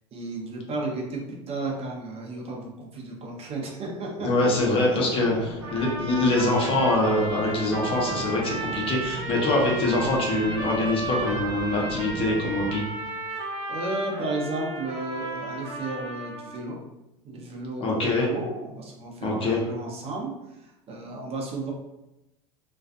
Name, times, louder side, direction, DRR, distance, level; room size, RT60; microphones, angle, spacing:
voice 1, 0.1-5.7 13.4-16.8 17.2-21.7, right 2 dB, 40° right, -1 dB, 0.7 m, -34 dB
voice 2, 4.2-12.8 17.8-18.3 19.2-19.6, left 2 dB, 35° left, -2 dB, 0.8 m, -24 dB
sound 1, 5.3-12.8, right 1 dB, 75° left, 0.9 m, -40 dB
sound 2, 5.6-16.6, right 2 dB, 85° right, 0.6 m, -34 dB
2.4 x 2.2 x 2.4 m, 0.93 s
hypercardioid pair, 90°, 15 cm